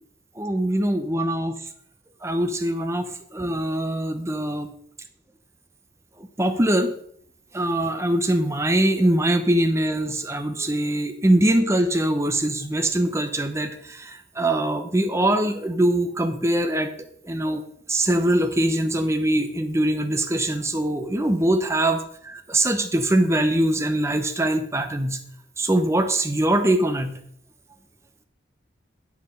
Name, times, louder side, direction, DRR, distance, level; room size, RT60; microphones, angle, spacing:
voice 1, 0.4-1.6 2.2-4.7 6.4-6.9 7.5-16.9 17.2-17.6 17.9-25.2 25.6-27.2, right 1 dB, 15° right, 6 dB, 0.7 m, -22 dB
9.6 x 6.4 x 5.6 m, 0.64 s
head